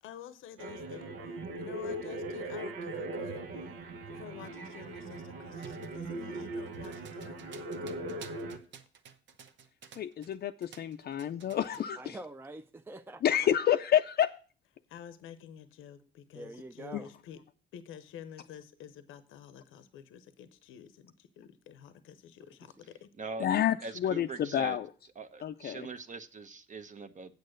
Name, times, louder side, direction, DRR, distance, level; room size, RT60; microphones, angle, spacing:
voice 1, 0.0-3.7 4.2-8.0 14.9-17.4 17.7-23.1, left 9 dB, 85° left, 0.7 m, -50 dB
sound 1, 0.6-8.6, right 2 dB, 85° right, 1.2 m, -39 dB
sound 2, 5.6-10.4 10.6-11.9, right 7 dB, 65° right, 0.9 m, -53 dB
voice 2, 10.0-12.2 13.2-14.3 16.9-17.0 23.4-24.9 25.4-25.9, left 10 dB, 50° left, 0.5 m, -29 dB
voice 3, 12.0-13.4 16.3-17.1, right 2 dB, 10° right, 0.5 m, -45 dB
voice 4, 23.2-23.5 23.8-24.8 25.2-27.3, right 3 dB, 40° right, 1.0 m, -42 dB
8.3 x 6.5 x 6.4 m
cardioid pair, 90°, 20 cm